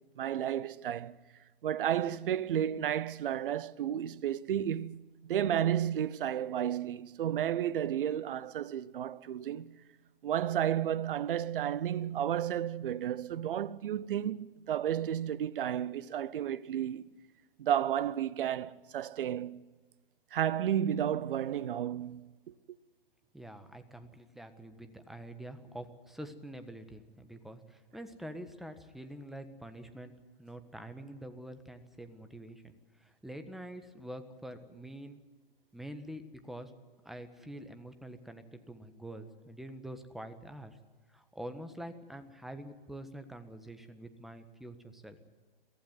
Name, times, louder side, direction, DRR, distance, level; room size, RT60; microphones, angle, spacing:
voice 1, 0.2-1.2 1.6-9.7 10.2-17.0 17.6-19.6 20.3-22.3, right 10 dB, 65° right, 0.8 m, -32 dB
voice 2, 23.3-30.1 30.4-35.2 35.7-36.7 37.0-40.8 41.1-45.2, right 1 dB, ahead, 1.4 m, -46 dB
23.0 x 15.5 x 9.3 m
hypercardioid pair, 120°, 29 cm